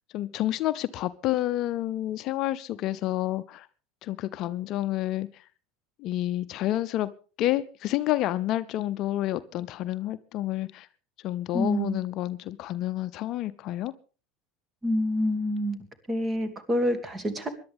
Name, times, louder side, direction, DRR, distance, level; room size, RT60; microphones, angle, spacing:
voice 1, 0.1-3.7 4.0-5.3 6.0-7.1 7.4-10.9 11.2-13.9, left 14 dB, 55° left, 14 dB, 0.6 m, -29 dB
voice 2, 11.5-12.0 14.8-15.8 16.1-17.5, equal, 25° right, 10 dB, 2.4 m, -27 dB
25.0 x 11.5 x 3.5 m, 0.36 s
hypercardioid pair, 75°, 0 cm